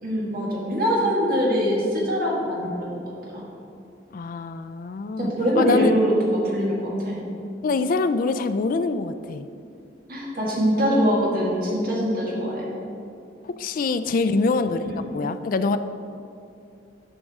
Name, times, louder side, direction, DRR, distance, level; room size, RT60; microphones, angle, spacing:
voice 1, 0.0-3.0 3.3-3.5 5.2-7.2 10.1-12.8 14.8-15.0, equal, 55° right, -4 dB, 1.9 m, -23 dB
voice 2, 4.1-5.3 5.6-5.9 7.6-9.5 13.4-14.9 15.1-15.8, left 4 dB, 50° left, 11 dB, 0.3 m, -24 dB
11.0 x 5.3 x 3.6 m, 2.5 s
head